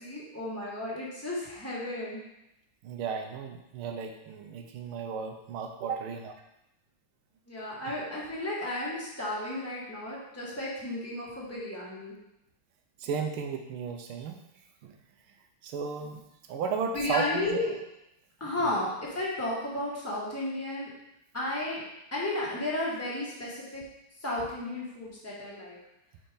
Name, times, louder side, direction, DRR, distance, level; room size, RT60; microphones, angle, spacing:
voice 1, 0.0-2.2 7.5-12.1 16.9-17.7 18.4-20.9 21.3-21.8 22.1-23.8 24.2-25.8, left 1 dB, 10° left, -6 dB, 1.1 m, -33 dB
voice 2, 2.8-6.3 13.0-14.4 14.8-14.9 15.6-16.2 16.5-17.6 18.6-18.7, right 6 dB, 85° right, 4 dB, 1.5 m, -34 dB
4.4 x 4.3 x 5.0 m, 0.86 s
omnidirectional pair, 2.4 m